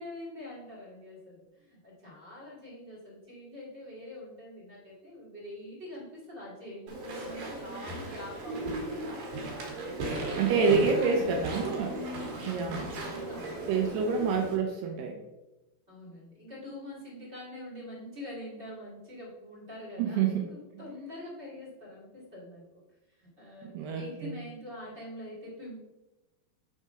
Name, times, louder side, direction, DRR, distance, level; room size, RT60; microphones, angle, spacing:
voice 1, 0.0-9.4 9.7-11.4 12.2-13.7 15.9-22.6 23.2-25.8, left 1 dB, 30° right, -7 dB, 1.2 m, -44 dB
Walk footsteps / Chatter / Squeak, 6.9-14.6, right 1 dB, 60° right, 2.8 m, -36 dB
voice 2, 10.4-12.1 12.5-12.9 13.7-15.2 20.0-20.5 23.6-24.4, right 5 dB, 75° right, 3 dB, 2.6 m, -28 dB
6.1 x 4.9 x 5.5 m, 1.0 s
omnidirectional pair, 5.2 m